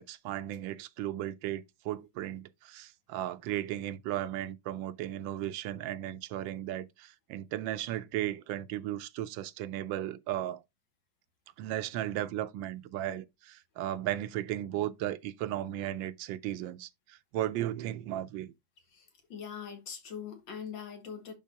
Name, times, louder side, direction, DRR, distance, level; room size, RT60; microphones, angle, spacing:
voice 1, 0.0-10.6 11.6-18.5, right 13 dB, 85° right, 1.3 m, -35 dB
voice 2, 18.9-21.3, left 7 dB, 85° left, 2.3 m, -42 dB
11.0 x 3.9 x 2.7 m
omnidirectional pair, 2.0 m